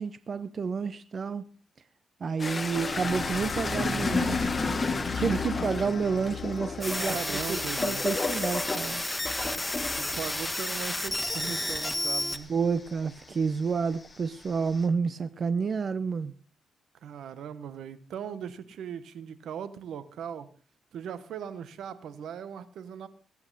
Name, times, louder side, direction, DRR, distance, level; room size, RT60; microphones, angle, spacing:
voice 1, 0.0-1.5 2.2-4.6 5.2-9.0 12.5-16.3, right 5 dB, 50° right, 0.7 m, -30 dB
sound 1, 2.4-13.3 13.7-14.8, left 3 dB, 30° left, 1.3 m, -33 dB
sound 2, 2.6-9.7, left 5 dB, 50° left, 2.2 m, -37 dB
sound 3, 6.8-12.4, left 1 dB, 10° left, 1.6 m, -31 dB
voice 2, 7.0-8.1 9.9-12.5 17.0-20.5 20.9-23.1, right 8 dB, 80° right, 1.2 m, -39 dB
20.0 x 8.8 x 4.1 m
cardioid pair, 80°, 0 cm